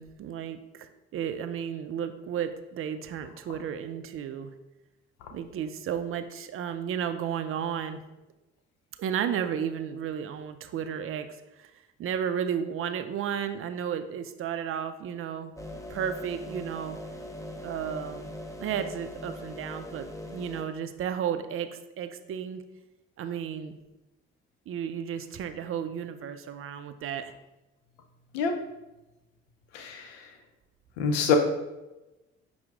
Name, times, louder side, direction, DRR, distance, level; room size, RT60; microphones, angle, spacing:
voice 1, 0.0-4.5 5.3-8.0 9.0-11.3 11.6-11.7 12.0-15.5 15.9-17.0 17.6-18.3 18.6-21.7 22.0-22.6 23.2-23.8 24.7-27.3, right 8 dB, 45° right, 9 dB, 0.4 m, -33 dB
sound 1, 15.6-20.6, left 1 dB, 10° left, 0.7 m, -41 dB
voice 2, 29.7-30.2 31.0-31.4, left 6 dB, 75° left, 5 dB, 0.6 m, -26 dB
5.7 x 2.1 x 3.5 m, 1.0 s
hypercardioid pair, 45°, 32 cm